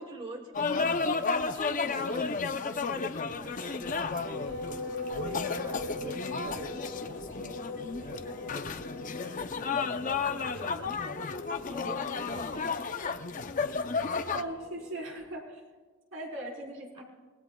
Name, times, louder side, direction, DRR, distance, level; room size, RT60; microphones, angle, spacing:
voice 1, 0.0-4.8 5.2-7.6 8.0-9.4 9.8-11.2 11.7-12.8 17.0-17.1, right 1 dB, 25° right, 4 dB, 1.1 m, -47 dB
sound 1, 0.5-14.4, left 4 dB, 40° left, 0.6 m, -33 dB
sound 2, 3.4-15.3, left 2 dB, 60° left, 4.2 m, -41 dB
voice 2, 14.3-15.6 16.1-17.0, right 1 dB, 65° right, -1 dB, 4.0 m, -39 dB
28.0 x 18.5 x 2.3 m, 1.4 s
head